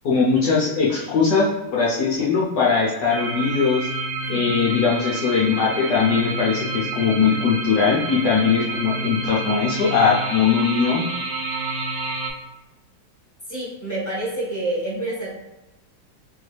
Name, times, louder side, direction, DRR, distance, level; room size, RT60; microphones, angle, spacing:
voice 1, 0.0-3.9 4.3-11.0, left 5 dB, 65° left, -5 dB, 1.1 m, -20 dB
sound 1, 3.1-12.3, right 3 dB, 65° right, 1.2 m, -29 dB
voice 2, 13.5-15.3, right 1 dB, 10° left, -8 dB, 1.1 m, -27 dB
4.2 x 2.7 x 3.2 m, 0.97 s
omnidirectional pair, 2.3 m